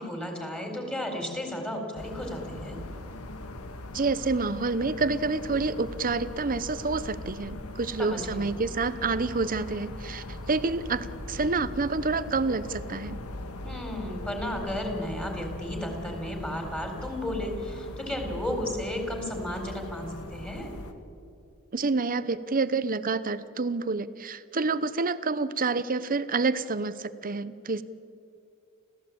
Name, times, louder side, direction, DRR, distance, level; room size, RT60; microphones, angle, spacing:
voice 1, 0.0-2.8 8.0-8.5 13.6-20.7, left 1 dB, 5° left, 2 dB, 4.1 m, -33 dB
sound 1, 2.0-20.9, left 1 dB, 90° left, 1.7 m, -40 dB
voice 2, 3.9-13.2 21.7-27.8, right 3 dB, 40° right, 14 dB, 0.9 m, -28 dB
29.5 x 15.5 x 8.6 m, 2.4 s
head